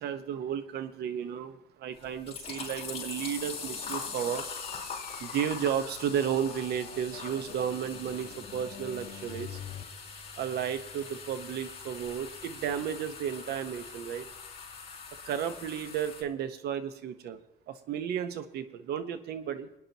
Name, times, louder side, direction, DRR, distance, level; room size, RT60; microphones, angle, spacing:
voice 1, 0.0-4.4 5.2-9.6 10.4-14.3 15.2-17.4 17.7-19.7, right 9 dB, 70° right, 10 dB, 1.3 m, -33 dB
sound 1, 2.0-16.2, left 5 dB, 35° left, 4.3 m, -42 dB
sound 2, 2.4-9.8, left 9 dB, 60° left, 1.6 m, -47 dB
26.5 x 9.9 x 3.0 m, 0.88 s
cardioid pair, 110°, 17 cm